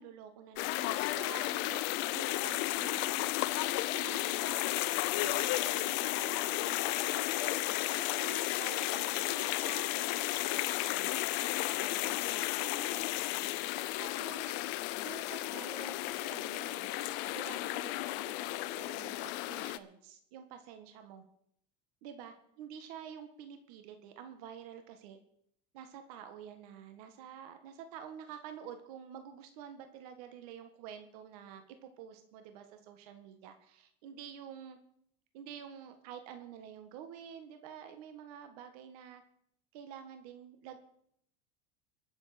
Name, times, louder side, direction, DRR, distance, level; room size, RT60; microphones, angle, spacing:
voice 1, 0.0-14.6 15.0-17.0 17.3-21.2 22.0-25.2 25.7-34.8 35.3-39.2 39.7-40.8, right 8 dB, 75° right, 7 dB, 1.6 m, -49 dB
sound 1, 0.6-19.8, left 17 dB, 60° left, 0.7 m, -33 dB
sound 2, 5.2-10.0, right 4 dB, 45° right, 5.1 m, -60 dB
22.0 x 7.4 x 5.1 m, 0.70 s
supercardioid pair, 115°, 20 cm